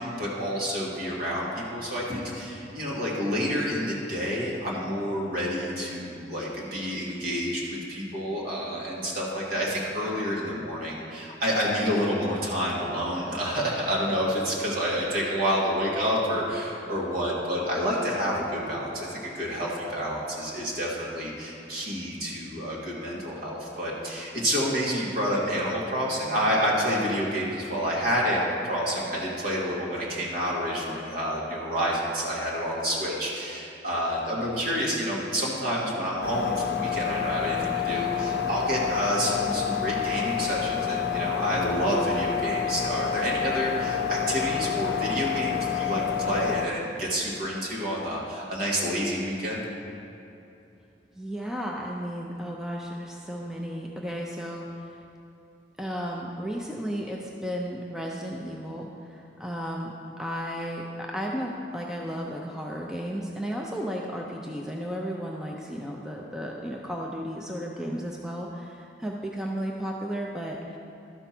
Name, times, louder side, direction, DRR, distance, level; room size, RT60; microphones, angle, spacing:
voice 1, 0.0-49.6, equal, 55° right, -5 dB, 2.0 m, -29 dB
sound 1, 36.2-46.7, left 8 dB, 60° left, 0.5 m, -28 dB
voice 2, 51.1-55.0 55.8-70.8, equal, 5° right, -2 dB, 0.5 m, -34 dB
12.5 x 4.5 x 5.9 m, 2.8 s
head